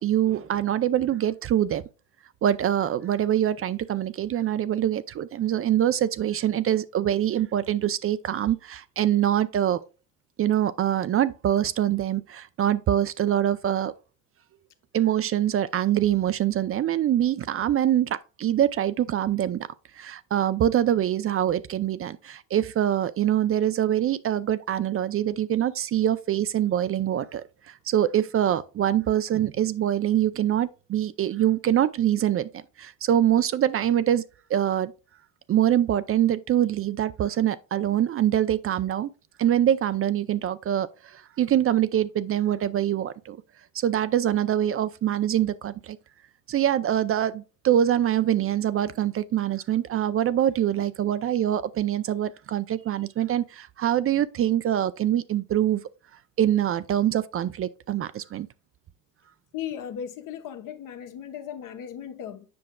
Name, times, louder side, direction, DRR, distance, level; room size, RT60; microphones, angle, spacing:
voice 1, 0.0-1.8 2.4-9.8 10.4-13.9 14.9-19.7 19.9-34.2 34.5-34.9 35.5-39.1 39.4-43.4 43.7-46.0 46.5-55.8 56.4-58.5, right 11 dB, 40° right, 0.4 m, -24 dB
voice 2, 59.5-62.4, left 9 dB, 60° left, 1.0 m, -36 dB
7.7 x 5.6 x 2.2 m
supercardioid pair, 70°, 37 cm